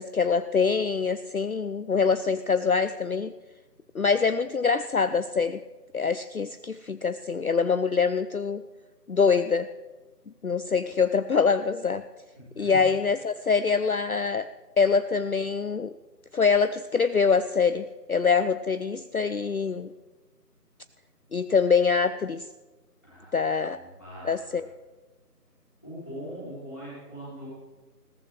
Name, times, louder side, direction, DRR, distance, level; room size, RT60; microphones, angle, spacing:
voice 1, 0.0-3.3 3.9-5.6 5.9-8.6 9.1-9.7 10.4-12.0 12.6-14.5 14.8-15.9 16.3-19.9 21.3-22.5 23.3-23.8 24.2-24.6, left 5 dB, 60° left, 11 dB, 0.5 m, -24 dB
voice 2, 12.3-12.8 23.0-24.6 25.8-27.5, equal, 10° left, -11 dB, 3.2 m, -42 dB
20.5 x 15.0 x 3.2 m, 1.2 s
figure-of-eight pair, 175°, 48 cm